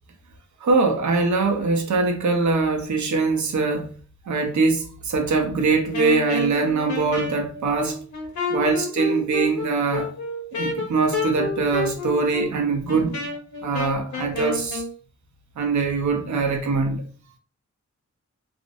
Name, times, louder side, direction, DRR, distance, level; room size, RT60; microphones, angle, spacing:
voice 1, 0.6-3.9 4.3-8.0 8.5-10.1 10.5-13.2 13.6-14.8 15.6-17.0, right 4 dB, 75° right, 0.6 m, -22 dB
Wind instrument woodwind instrument, 5.9-14.9, left 3 dB, 75° left, 0.8 m, -30 dB
2.5 x 2.0 x 2.5 m
wide cardioid pair, 150°, 29 cm